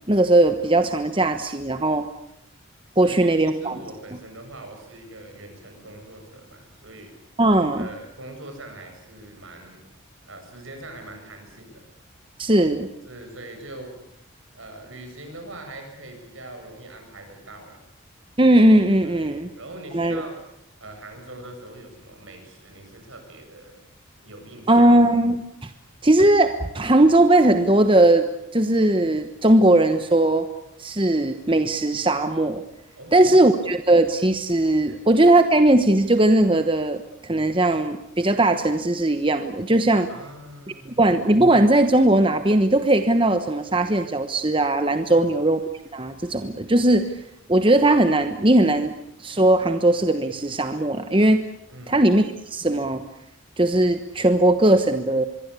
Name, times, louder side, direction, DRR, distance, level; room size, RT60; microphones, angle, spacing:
voice 1, 0.1-2.1 3.0-3.7 7.4-7.9 12.4-12.9 18.4-19.5 19.9-20.2 24.7-25.7 26.0-28.3 28.5-30.5 30.8-32.6 33.1-40.1 41.0-45.6 45.9-47.1 47.5-48.9 49.2-51.4 51.9-53.0 53.6-55.2, right 1 dB, 25° right, 8 dB, 1.1 m, -18 dB
voice 2, 2.9-7.1 7.7-9.8 10.2-11.9 13.0-13.9 14.5-17.8 19.0-20.4 20.8-23.9 24.2-25.1 33.0-33.4 34.9-35.0 40.1-41.1 45.1-45.3 51.7-52.1, right 1 dB, 70° right, 4 dB, 7.8 m, -42 dB
25.0 x 23.0 x 8.4 m, 0.81 s
head